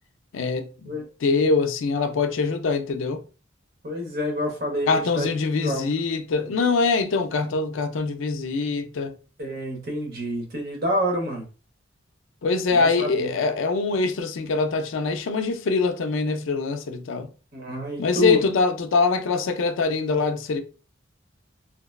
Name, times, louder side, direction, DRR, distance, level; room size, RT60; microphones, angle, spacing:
voice 1, 0.3-0.9 1.2-3.2 4.9-9.1 12.4-17.3 18.0-20.6, left 4 dB, 85° left, 0.4 m, -23 dB
voice 2, 3.8-5.9 9.4-11.4 12.7-13.3 17.5-18.4, equal, 50° right, 0.9 m, -28 dB
2.8 x 2.2 x 2.2 m
head